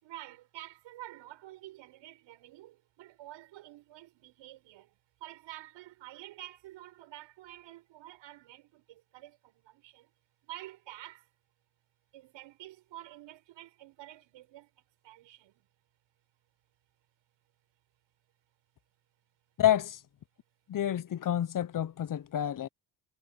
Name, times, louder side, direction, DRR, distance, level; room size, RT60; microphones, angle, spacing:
voice 1, 0.0-4.9 5.2-10.1 10.5-11.2 12.1-14.7 15.0-15.5, right 15 dB, 85° right, 7.1 m, -49 dB
voice 2, 19.6-20.0 20.7-22.7, left 11 dB, 45° left, 0.9 m, -28 dB
cardioid pair, 80°, 44 cm